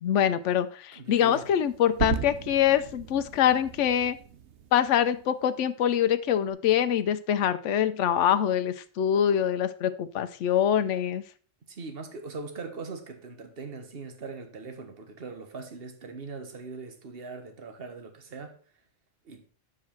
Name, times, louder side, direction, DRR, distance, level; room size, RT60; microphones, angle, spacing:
voice 1, 0.0-4.2 4.7-11.2, left 9 dB, 80° left, 1.0 m, -24 dB
voice 2, 0.9-1.5 11.7-18.6 19.2-19.4, right 4 dB, 55° right, 1.6 m, -41 dB
sound 1, 1.1-5.5, right 8 dB, 70° right, 1.1 m, -36 dB
9.5 x 7.5 x 4.5 m
omnidirectional pair, 1.2 m